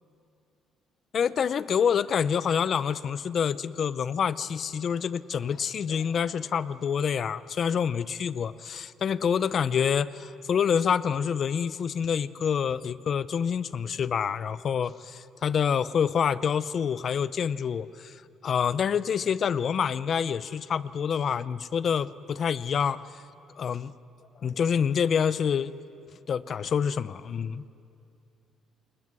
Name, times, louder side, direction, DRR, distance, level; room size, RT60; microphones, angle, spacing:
voice 1, 1.1-23.2 23.6-23.9 24.4-25.7 26.3-27.6, left 7 dB, 40° left, 16 dB, 0.6 m, -27 dB
26.5 x 21.0 x 9.6 m, 2.5 s
cardioid pair, 145°, 0 cm